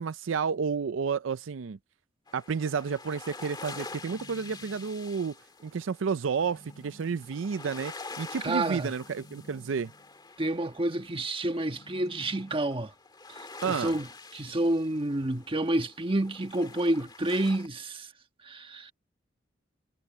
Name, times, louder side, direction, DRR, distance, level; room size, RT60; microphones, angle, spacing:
voice 1, 0.0-1.8 2.3-5.4 5.6-9.9 13.6-14.0, right 6 dB, 85° right, 0.5 m, -31 dB
sound 1, 2.3-17.7, left 3 dB, 25° left, 1.8 m, -46 dB
sound 2, 3.8-5.1 6.3-7.6 8.9-10.2 11.6-12.9, equal, 50° left, 4.7 m, -55 dB
voice 2, 8.4-8.9 10.4-12.9 13.7-14.1 14.3-18.1 18.4-18.9, right 1 dB, 30° right, 1.3 m, -29 dB
head